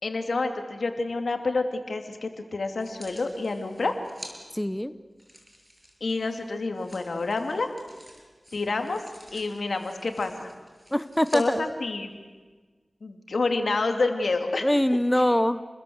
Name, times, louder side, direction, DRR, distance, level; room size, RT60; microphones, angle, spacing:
voice 1, 0.0-3.9 6.0-7.7 8.5-9.0 9.3-10.5 11.3-12.1 13.0-14.7, left 3 dB, 85° left, 5 dB, 2.8 m, -28 dB
sound 1, 2.8-4.3 5.2-11.4 12.1-12.2, equal, 10° right, 6.9 m, -49 dB
voice 2, 4.5-4.9 10.9-11.6 14.6-15.6, left 1 dB, 10° left, 13 dB, 1.0 m, -23 dB
29.5 x 21.5 x 8.1 m, 1.4 s
wide cardioid pair, 50°, 0 cm